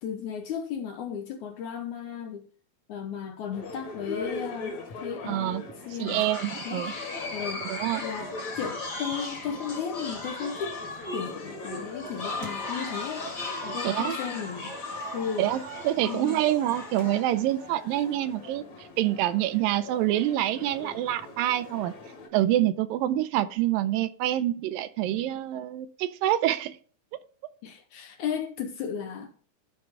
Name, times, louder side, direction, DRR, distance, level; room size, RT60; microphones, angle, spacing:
voice 1, 0.0-2.5 2.9-5.6 5.9-6.3 6.6-6.9 7.3-10.8 11.1-13.3 13.6-14.8 15.1-15.5 16.0-16.5 27.6-29.3, left 7 dB, 75° left, 1.9 m, -35 dB
sound 1, 3.5-22.3, left 2 dB, 55° left, 2.9 m, -42 dB
voice 2, 5.3-5.6 6.0-6.9 7.7-8.0 13.8-14.2 15.4-15.6 15.8-21.9 22.3-26.8, right 13 dB, 80° right, 2.3 m, -26 dB
sound 2, 6.1-17.4, left 3 dB, 30° left, 1.7 m, -37 dB
sound 3, 12.0-18.2, right 6 dB, 65° right, 2.2 m, -46 dB
13.5 x 5.0 x 3.5 m
omnidirectional pair, 4.1 m